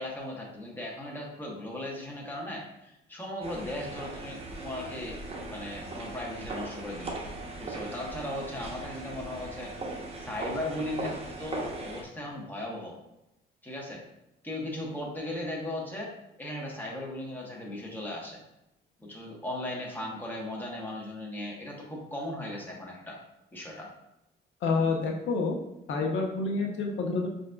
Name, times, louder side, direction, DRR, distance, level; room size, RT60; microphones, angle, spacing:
voice 1, 0.0-5.2 5.5-7.2 7.6-12.9 13.6-14.0 14.4-16.1 16.4-18.4 19.0-23.2 23.5-23.9, left 1 dB, 10° left, -2 dB, 1.1 m, -37 dB
sound 1, 3.4-12.0, right 2 dB, 30° right, 0.8 m, -39 dB
voice 2, 24.6-25.6 25.9-27.3, left 4 dB, 75° left, 2 dB, 0.6 m, -28 dB
5.7 x 2.6 x 2.2 m, 0.88 s
cardioid pair, 90°, 20 cm